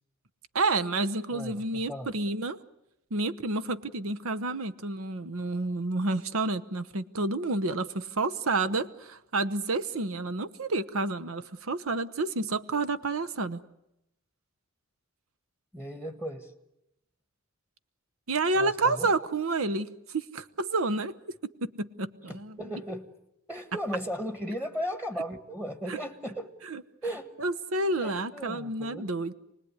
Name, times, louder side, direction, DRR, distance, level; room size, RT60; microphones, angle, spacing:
voice 1, 0.5-2.6 3.1-13.6 18.3-21.1 21.8-22.6 25.9-26.0 26.7-26.8 27.4-29.3, right 3 dB, 75° right, 12 dB, 1.0 m, -29 dB
voice 2, 1.3-2.1 15.7-16.5 18.5-19.1 22.3-23.1 23.5-26.5 27.0-27.3 28.0-29.1, equal, 10° right, 7 dB, 1.4 m, -36 dB
28.0 x 20.0 x 9.7 m, 0.87 s
head